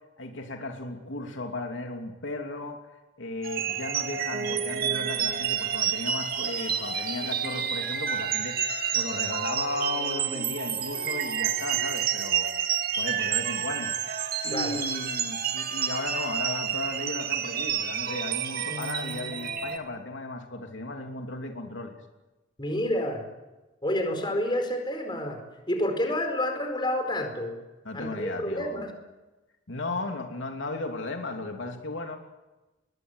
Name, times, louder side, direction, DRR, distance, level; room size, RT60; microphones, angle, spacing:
voice 1, 0.2-2.8 3.2-12.5 12.9-13.9 14.4-21.9 27.8-28.9 29.7-32.2, left 2 dB, 80° left, 3 dB, 3.1 m, -35 dB
sound 1, 3.4-19.8, right 8 dB, 50° right, 2.1 m, -29 dB
voice 2, 22.6-23.2 23.8-25.4 25.7-27.5 27.9-28.9, left 1 dB, 25° left, 5 dB, 4.7 m, -29 dB
22.0 x 22.0 x 8.2 m, 1.1 s
head